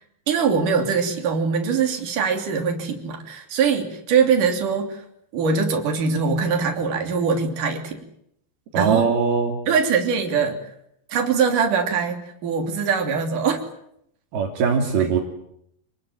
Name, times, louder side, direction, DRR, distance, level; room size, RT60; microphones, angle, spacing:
voice 1, 0.3-5.0 5.3-8.0 8.7-9.1 9.7-10.6 11.1-13.7 15.0-15.1, right 5 dB, 60° right, 3 dB, 4.7 m, -22 dB
voice 2, 8.7-9.6 14.3-15.2, right 5 dB, 80° right, 0 dB, 4.9 m, -21 dB
28.0 x 20.5 x 9.3 m, 0.74 s
omnidirectional pair, 4.3 m